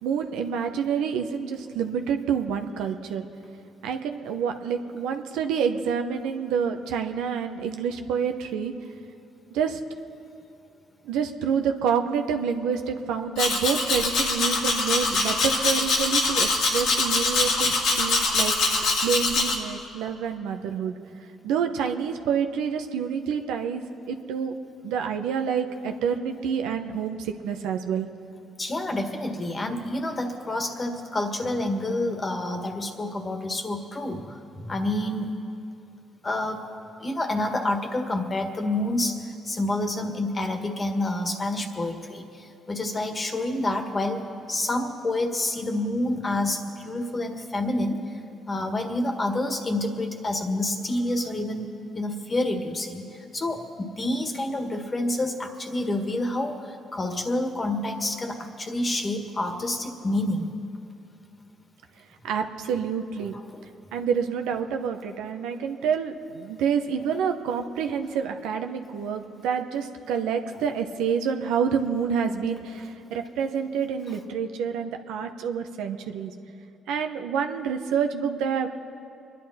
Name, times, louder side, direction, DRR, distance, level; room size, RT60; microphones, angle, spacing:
voice 1, 0.0-3.3 3.8-8.7 9.5-9.8 11.0-21.0 21.4-24.5 24.8-28.1 62.2-63.3 63.9-76.3 76.9-78.7, right 7 dB, 85° right, 5 dB, 0.9 m, -28 dB
Domestic sounds home sounds, 13.4-19.6, left 3 dB, 80° left, 2.3 m, -23 dB
voice 2, 28.6-35.3 36.2-36.6 37.0-48.2 48.5-60.5 63.5-63.6, left 1 dB, 35° left, 5 dB, 1.8 m, -28 dB
25.5 x 11.0 x 4.3 m, 2.6 s
supercardioid pair, 65°, 0 cm